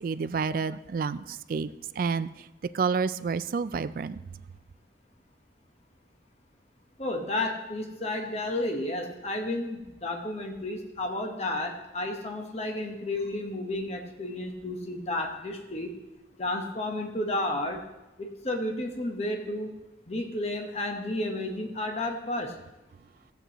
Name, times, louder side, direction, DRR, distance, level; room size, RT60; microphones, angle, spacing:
voice 1, 0.0-1.2 1.5-2.3 2.7-4.2, right 5 dB, 50° right, 15 dB, 0.3 m, -29 dB
voice 2, 7.0-15.9 16.4-17.8 18.2-19.7 20.1-22.5, left 1 dB, 35° left, 2 dB, 1.1 m, -32 dB
14.5 x 8.2 x 3.0 m, 1.0 s
head